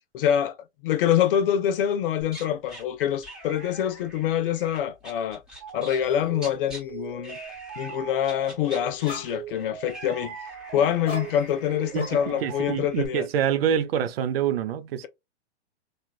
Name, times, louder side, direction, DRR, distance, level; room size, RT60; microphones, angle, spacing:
voice 1, 0.1-0.5 0.8-5.4 5.7-7.4 7.8-10.4 10.7-13.3, left 10 dB, 50° left, 0.7 m, -25 dB
sound 1, 2.2-2.8 3.2-6.1 6.3-6.8 7.2-8.0 8.2-13.1, right 1 dB, ahead, 1.3 m, -44 dB
sound 2, 5.6-12.8, right 7 dB, 30° right, 0.9 m, -41 dB
sound 3, 6.0-6.3 6.7-7.1 8.6-8.7 9.0-9.7 11.0-11.7 11.9-12.7, left 2 dB, 15° left, 1.4 m, -40 dB
voice 2, 12.4-15.1, right 9 dB, 60° right, 0.5 m, -26 dB
3.1 x 2.4 x 2.3 m
hypercardioid pair, 125°, 35 cm